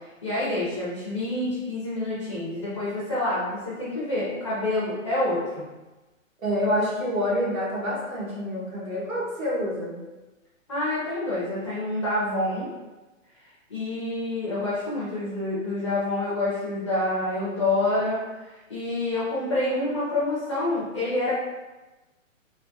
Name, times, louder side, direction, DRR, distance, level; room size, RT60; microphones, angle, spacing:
voice 1, 0.0-5.6 10.7-12.7 13.7-21.3, left 2 dB, 25° left, -9 dB, 0.5 m, -27 dB
voice 2, 6.4-10.0, equal, 85° right, -5 dB, 1.3 m, -27 dB
3.3 x 2.1 x 2.6 m, 1.1 s
hypercardioid pair, 165°, 40 cm